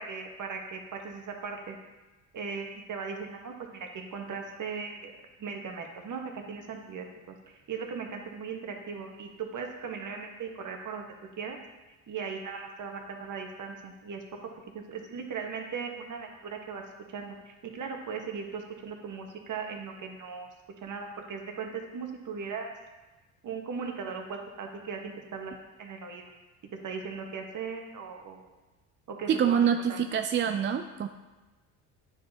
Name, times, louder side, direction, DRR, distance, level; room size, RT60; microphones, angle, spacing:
voice 1, 0.0-1.8 2.3-6.2 6.5-11.1 11.4-11.6 12.1-16.8 17.1-20.5 20.8-22.7 23.4-26.2 26.8-28.5 29.1-29.6 29.9-30.0, right 5 dB, 45° right, 3 dB, 1.3 m, -38 dB
voice 2, 29.3-31.1, right 8 dB, 30° right, 7 dB, 0.4 m, -26 dB
9.8 x 4.8 x 2.8 m, 1.1 s
hypercardioid pair, 65°, 41 cm